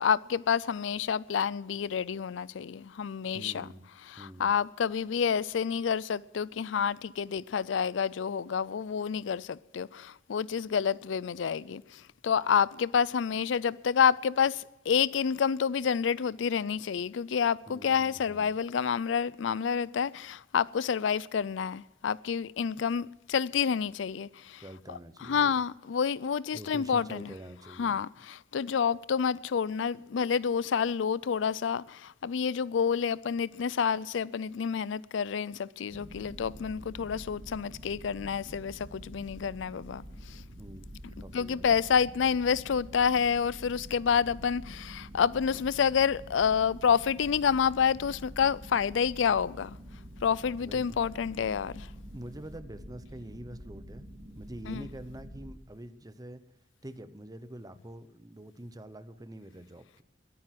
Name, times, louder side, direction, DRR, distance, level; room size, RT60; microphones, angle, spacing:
voice 1, 0.0-3.7 4.1-24.6 24.9-27.3 27.8-40.4 41.3-49.8 50.2-51.9 54.6-54.9, left 7 dB, 80° left, 0.4 m, -29 dB
voice 2, 3.3-3.9 4.2-4.5 17.7-18.5 24.6-25.6 26.5-28.0 40.6-40.9 41.2-41.8 50.6-51.0 52.1-54.1 54.3-56.4 56.8-60.0, right 1 dB, 20° right, 0.8 m, -45 dB
sound 1, 35.9-55.5, equal, 50° right, 2.5 m, -47 dB
21.5 x 9.3 x 5.9 m
head